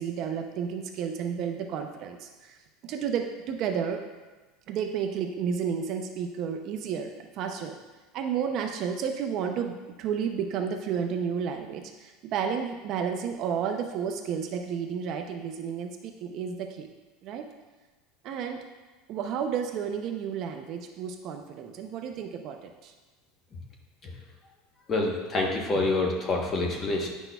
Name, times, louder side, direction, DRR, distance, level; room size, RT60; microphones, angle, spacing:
voice 1, 0.0-2.6 2.8-4.0 4.7-7.7 8.1-16.9 17.2-17.4 18.2-18.6 19.1-22.9, right 7 dB, 40° right, 4 dB, 0.5 m, -31 dB
voice 2, 24.9-27.1, left 2 dB, 20° left, 0 dB, 1.0 m, -27 dB
9.9 x 6.1 x 2.3 m, 1.2 s
cardioid pair, 165°, 0 cm